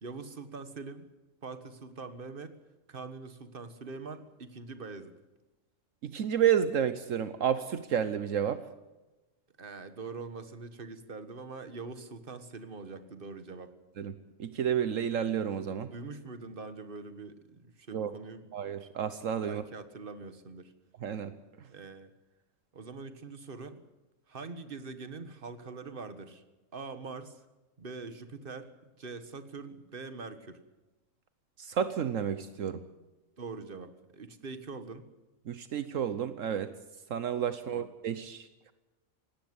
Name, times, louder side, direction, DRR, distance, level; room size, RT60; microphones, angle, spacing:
voice 1, 0.0-1.1 1.4-2.5 2.9-5.2 9.6-13.7 15.9-18.5 19.4-20.7 21.7-22.1 22.7-23.8 24.3-26.4 26.7-27.4 27.8-30.6 33.4-35.1 37.7-37.9, right 4 dB, 40° right, 10 dB, 1.7 m, -43 dB
voice 2, 6.0-8.6 14.0-14.1 14.4-15.9 17.9-18.1 18.5-19.6 21.0-21.3 31.6-32.8 35.5-36.7 37.1-38.7, right 8 dB, 75° right, 12 dB, 1.3 m, -31 dB
19.0 x 17.5 x 9.7 m, 1.1 s
omnidirectional pair, 1.4 m